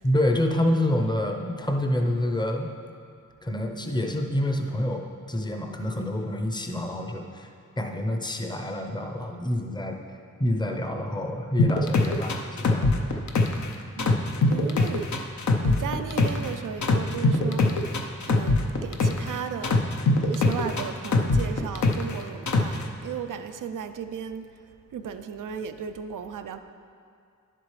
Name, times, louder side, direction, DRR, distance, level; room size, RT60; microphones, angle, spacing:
voice 1, 0.0-2.7 3.4-7.5 7.8-10.0 10.4-13.0, left 1 dB, 15° left, 3 dB, 0.7 m, -27 dB
sound 1, 11.6-13.7 14.0-16.5 16.8-19.3 19.6-22.1 22.5-22.8, left 2 dB, 65° left, 0.7 m, -22 dB
voice 2, 14.0-15.1 15.6-17.8 18.2-19.8 20.2-24.4 24.9-26.6, right 7 dB, 85° right, 9 dB, 0.5 m, -35 dB
10.5 x 7.6 x 3.2 m, 2.4 s
wide cardioid pair, 100°, 31 cm